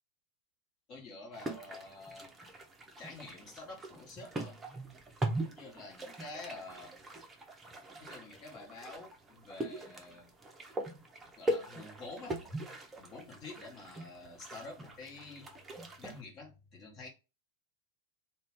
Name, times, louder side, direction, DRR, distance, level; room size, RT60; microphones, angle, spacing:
voice 1, 0.9-2.3 3.0-4.6 5.4-6.9 8.0-10.3 11.4-12.4 13.0-15.5 16.0-17.1, left 3 dB, 35° left, 1.2 m, -48 dB
sound 1, 1.3-16.2, right 1 dB, 15° right, 0.6 m, -41 dB
2.6 x 2.2 x 3.4 m
figure-of-eight pair, 90°, 0 cm